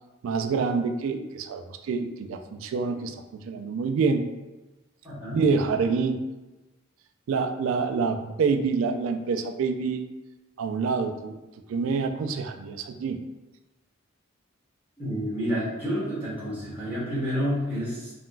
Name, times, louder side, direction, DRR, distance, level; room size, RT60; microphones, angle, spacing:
voice 1, 0.2-4.3 5.3-6.2 7.3-10.1 10.6-11.4 11.7-13.2, right 5 dB, 80° right, 6 dB, 0.3 m, -27 dB
voice 2, 5.0-5.4 15.0-18.1, equal, 10° right, -10 dB, 1.3 m, -29 dB
3.7 x 2.2 x 2.4 m, 1.1 s
head